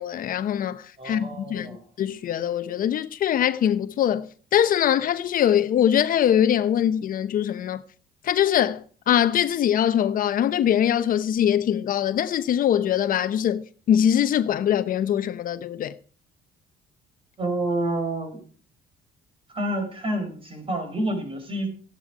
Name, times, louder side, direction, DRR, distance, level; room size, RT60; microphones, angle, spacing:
voice 1, 0.0-7.8 8.2-16.0, left 10 dB, 55° left, 0.9 m, -23 dB
voice 2, 1.0-1.8 17.4-18.4 19.5-21.7, right 1 dB, 30° right, 5.1 m, -28 dB
15.0 x 10.0 x 4.9 m
cardioid pair, 110°, 17 cm